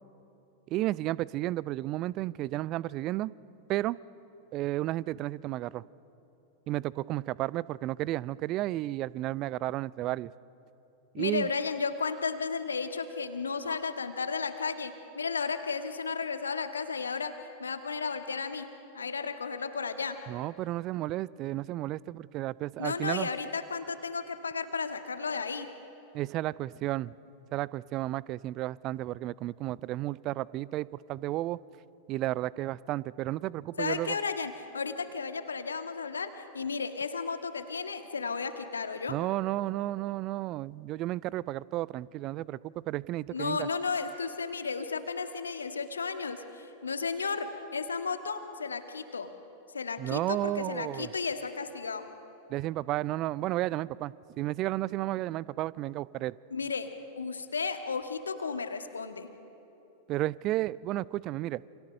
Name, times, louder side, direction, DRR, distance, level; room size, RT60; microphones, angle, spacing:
voice 1, 0.7-3.3 3.7-4.0 4.5-5.8 6.7-10.3 11.1-11.5 20.3-23.3 26.1-27.1 27.5-31.6 32.1-34.2 39.1-43.7 50.0-51.1 52.5-56.4 60.1-61.6, right 16 dB, 35° right, 22 dB, 0.5 m, -32 dB
voice 2, 11.2-17.3 17.6-20.2 22.8-25.7 33.8-39.2 43.3-49.3 49.7-52.1 56.5-59.3, left 5 dB, 75° left, 8 dB, 1.7 m, -34 dB
28.5 x 28.0 x 6.6 m, 3.0 s
figure-of-eight pair, 90°, 0 cm